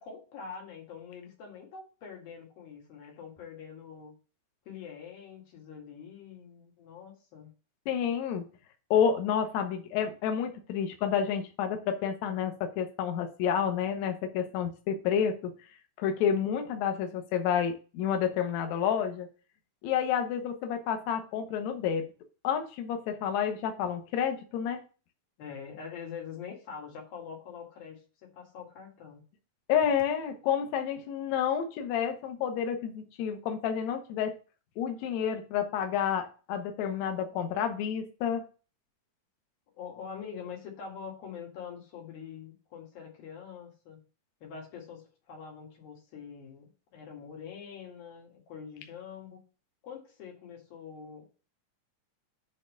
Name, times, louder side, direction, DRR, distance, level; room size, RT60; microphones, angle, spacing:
voice 1, 0.0-4.1 4.7-7.5 25.4-29.2 39.8-44.0 44.4-49.4 49.8-51.3, left 6 dB, 85° left, 0 dB, 3.8 m, -44 dB
voice 2, 7.9-8.5 8.9-15.5 16.0-19.3 19.8-22.1 22.4-24.8 29.7-34.3 34.8-38.4, left 8 dB, 65° left, 5 dB, 2.0 m, -29 dB
9.0 x 3.6 x 6.3 m, 0.36 s
omnidirectional pair, 4.0 m